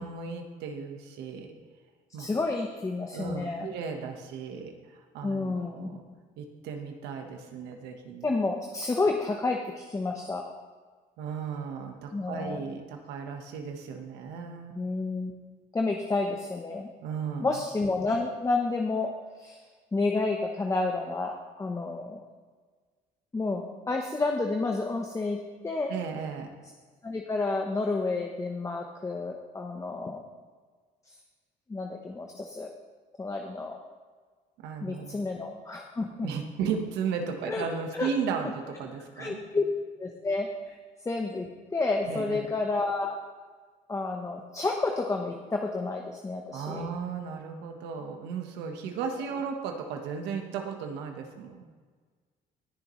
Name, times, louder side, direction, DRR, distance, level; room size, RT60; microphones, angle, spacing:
voice 1, 0.0-1.5 2.1-2.3 3.1-6.0 6.4-8.3 11.2-14.8 17.0-17.6 25.9-26.5 34.6-35.2 36.2-39.4 42.0-42.5 46.5-51.6, right 6 dB, 90° right, 4 dB, 1.4 m, -35 dB
voice 2, 2.2-3.7 5.2-6.0 8.2-10.5 12.1-12.7 14.7-15.3 15.7-16.9 17.4-19.6 19.9-22.2 23.3-25.9 27.0-30.2 31.1-31.2 31.7-32.7 33.2-33.8 34.8-36.3 37.4-37.7 37.9-38.1 39.2-39.6 40.0-40.8 41.0-43.1 43.9-46.9, left 3 dB, 20° left, 2 dB, 0.9 m, -30 dB
20.5 x 6.8 x 3.2 m, 1.5 s
cardioid pair, 110°, 17 cm